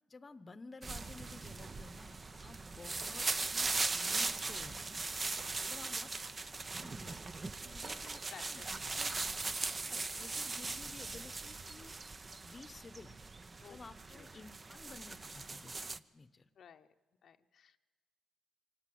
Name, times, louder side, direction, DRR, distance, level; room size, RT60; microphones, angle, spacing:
voice 1, 0.1-5.1 5.6-6.1 6.5-8.2 8.5-9.1 9.8-12.0 12.4-13.2 13.6-16.5, left 3 dB, 30° left, 13 dB, 0.9 m, -54 dB
sound 1, 0.8-16.0, right 3 dB, 30° right, 0.7 m, -39 dB
sound 2, 1.4-11.4, right 4 dB, 45° right, 1.0 m, -59 dB
voice 2, 5.6-6.0 8.3-9.1 9.8-10.0 13.6-13.8 14.1-14.2 16.6-16.9 17.2-17.8, left 8 dB, 60° left, 6 dB, 0.8 m, -56 dB
24.5 x 18.5 x 7.8 m, 1.3 s
cardioid pair, 90°, 0 cm